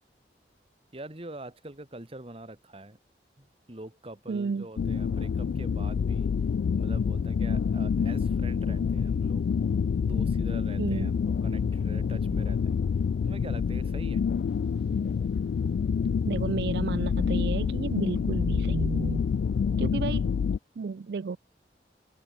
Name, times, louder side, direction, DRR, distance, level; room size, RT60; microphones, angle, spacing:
voice 1, 0.9-3.0 3.4-6.3 6.8-9.4 10.0-11.1 11.4-12.8 13.2-14.2, right 1 dB, 35° right, 1.9 m, -44 dB
voice 2, 4.3-4.7 10.8-11.2 16.3-19.3 19.8-20.3 20.8-21.4, right 5 dB, 60° right, 0.4 m, -32 dB
sound 1, 4.8-20.6, left 6 dB, 75° left, 0.3 m, -27 dB
sound 2, 14.3-18.5, right 1 dB, 85° right, 5.4 m, -67 dB
open air
head